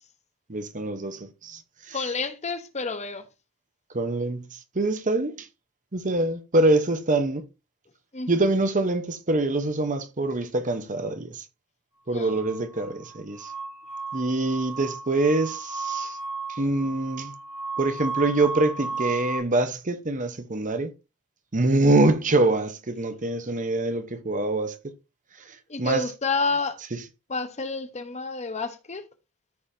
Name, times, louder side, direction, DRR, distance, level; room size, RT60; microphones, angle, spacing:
voice 1, 0.5-2.0 3.9-5.5 5.9-7.4 8.3-11.4 12.1-13.5 14.1-16.2 16.5-17.3 17.8-20.9 21.5-24.9 25.4-26.0, right 2 dB, 35° right, 1.0 m, -25 dB
voice 2, 1.9-3.3 8.1-8.3 12.1-12.4 21.7-21.9 25.7-26.8 27.3-29.1, left 4 dB, 30° left, 1.0 m, -30 dB
sound 1, 12.2-19.4, right 4 dB, 65° left, 1.4 m, -34 dB
14.0 x 5.6 x 2.7 m
head